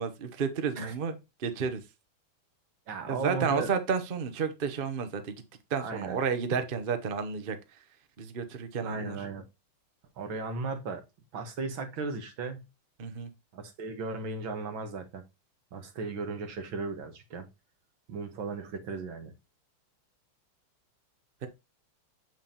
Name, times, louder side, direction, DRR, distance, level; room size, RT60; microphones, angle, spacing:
voice 1, 0.0-1.8 3.1-5.4 5.7-7.8 8.2-9.2 13.0-13.3, right 6 dB, 50° right, 0.6 m, -31 dB
voice 2, 2.9-3.7 5.8-6.2 8.8-9.4 10.2-11.0 11.3-12.7 13.5-15.2 15.7-17.5 18.1-19.3, right 4 dB, 65° right, 2.1 m, -36 dB
7.0 x 6.0 x 2.8 m
omnidirectional pair, 2.4 m